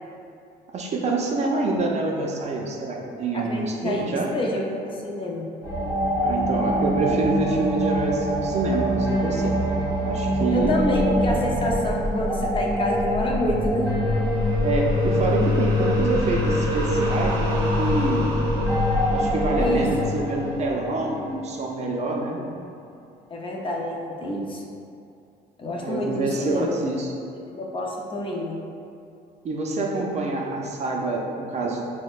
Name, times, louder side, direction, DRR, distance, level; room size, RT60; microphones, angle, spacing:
voice 1, 0.7-4.3 6.2-9.6 10.0-10.8 14.6-18.3 19.1-22.4 25.8-27.1 29.4-31.8, right 2 dB, 40° right, -1 dB, 0.5 m, -26 dB
voice 2, 3.3-5.5 10.5-13.9 19.6-19.9 23.3-24.6 25.6-26.8 27.3-28.6, left 1 dB, 30° left, -2 dB, 0.5 m, -28 dB
sound 1, 5.6-21.9, equal, 25° right, 1.2 m, -24 dB
5.9 x 2.1 x 2.4 m, 2.5 s
cardioid pair, 110°, 17 cm